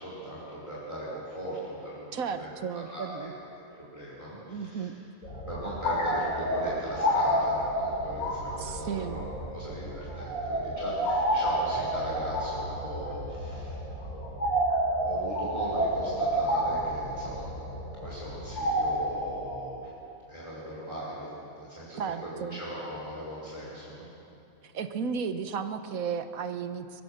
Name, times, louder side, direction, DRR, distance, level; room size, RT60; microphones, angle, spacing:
voice 1, 0.0-2.5 2.7-3.3 3.8-4.9 5.5-9.2 9.5-14.2 14.9-17.5 18.0-19.9 20.3-21.3 21.6-24.0, right 1 dB, 20° left, -7 dB, 5.1 m, -39 dB
voice 2, 2.1-3.3 4.5-5.0 8.6-9.2 22.0-22.6 24.6-27.0, right 6 dB, 75° right, 9 dB, 1.4 m, -34 dB
sound 1, 5.2-19.6, equal, 75° left, 4.4 m, -30 dB
22.5 x 22.0 x 6.6 m, 2.8 s
omnidirectional pair, 1.5 m